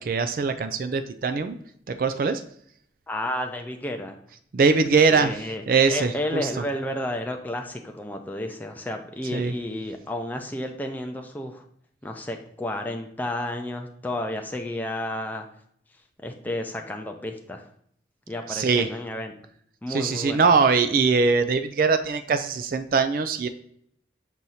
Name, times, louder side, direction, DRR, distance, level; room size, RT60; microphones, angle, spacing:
voice 1, 0.0-1.6 1.9-2.4 4.5-6.5 9.3-9.5 18.5-18.9 19.9-23.5, right 4 dB, 50° right, 10 dB, 0.3 m, -22 dB
voice 2, 3.1-4.2 5.1-5.6 5.9-11.6 12.0-15.5 16.2-17.7 18.3-19.3 19.8-20.5, left 1 dB, 10° left, 3 dB, 0.5 m, -31 dB
6.2 x 2.7 x 5.6 m, 0.66 s
head